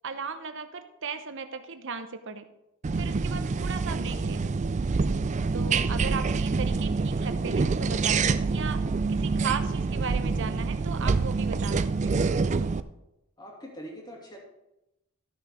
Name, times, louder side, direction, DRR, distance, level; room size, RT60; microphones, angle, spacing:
voice 1, 0.0-2.4 3.0-4.5 5.5-8.8 9.1-12.3, right 5 dB, 55° right, 9 dB, 0.9 m, -36 dB
sound 1, 2.8-12.8, right 4 dB, 30° right, 0.4 m, -26 dB
voice 2, 13.4-14.4, equal, 20° left, -2 dB, 2.5 m, -43 dB
13.0 x 6.3 x 5.1 m, 0.90 s
head